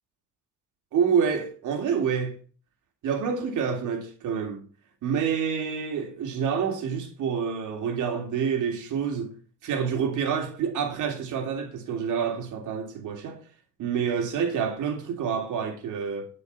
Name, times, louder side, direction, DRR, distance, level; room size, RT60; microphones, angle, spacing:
voice 1, 0.9-2.4 3.0-4.6 5.0-9.3 9.6-13.4 13.8-16.3, right 7 dB, 80° right, 3.2 m, -27 dB
11.5 x 6.3 x 5.7 m
cardioid pair, 90°, 30 cm